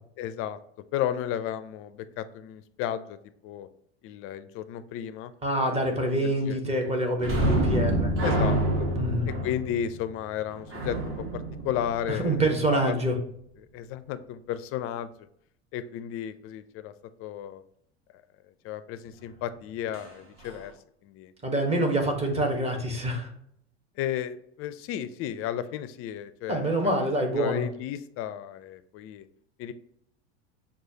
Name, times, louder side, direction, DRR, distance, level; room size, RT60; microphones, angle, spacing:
voice 1, 0.2-0.6 0.9-3.2 3.4-3.7 4.0-5.3 6.2-6.6 8.2-8.6 9.3-12.4 12.7-12.9 13.7-15.3 15.7-16.9 17.2-17.6 18.6-20.7 21.0-21.3 24.0-26.7 27.3-29.2 29.6-29.7, left 10 dB, 40° left, 12 dB, 0.4 m, -33 dB
voice 2, 5.4-8.1 9.0-9.3 12.1-13.2 21.4-23.3 26.5-27.6, right 1 dB, 20° right, 2 dB, 1.0 m, -26 dB
sound 1, 7.2-12.6 19.9-20.1 20.4-20.6, right 1 dB, 40° right, 1.1 m, -28 dB
6.2 x 2.4 x 2.7 m, 0.70 s
hypercardioid pair, 90°, 33 cm